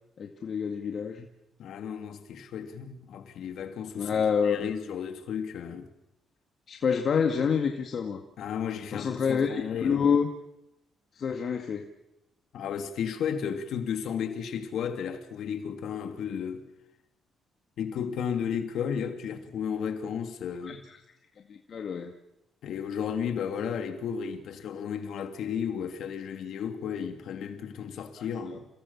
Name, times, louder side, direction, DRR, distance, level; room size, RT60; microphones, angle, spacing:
voice 1, 0.2-1.3 4.0-4.7 6.7-8.2 8.9-10.3 11.2-11.9 20.6-20.8 21.5-22.1, left 6 dB, 55° left, 2.1 m, -27 dB
voice 2, 1.6-5.9 8.4-10.1 12.5-16.6 17.8-20.8 22.6-28.7, left 7 dB, 75° left, 2.8 m, -33 dB
29.0 x 18.5 x 7.3 m
cardioid pair, 90°, 0 cm